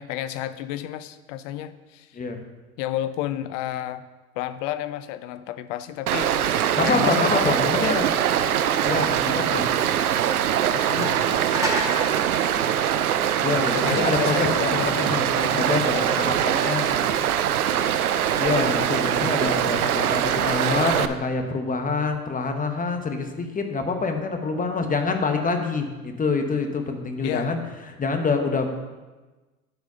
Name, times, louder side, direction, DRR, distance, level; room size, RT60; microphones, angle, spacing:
voice 1, 0.0-2.2 2.8-4.0 4.4-6.3 6.8-7.8 10.7-11.7 13.7-15.5 27.2-27.6, left 12 dB, 60° left, 13 dB, 0.7 m, -31 dB
Stream, 6.1-21.1, right 10 dB, 85° right, 0.6 m, -23 dB
voice 2, 6.8-8.1 8.9-9.7 13.4-17.0 18.4-27.6 27.9-28.7, left 4 dB, 20° left, 5 dB, 1.1 m, -26 dB
sound 1, 11.0-13.8, right 1 dB, 5° right, 2.2 m, -31 dB
11.0 x 4.8 x 5.6 m, 1.2 s
hypercardioid pair, 90°, 43 cm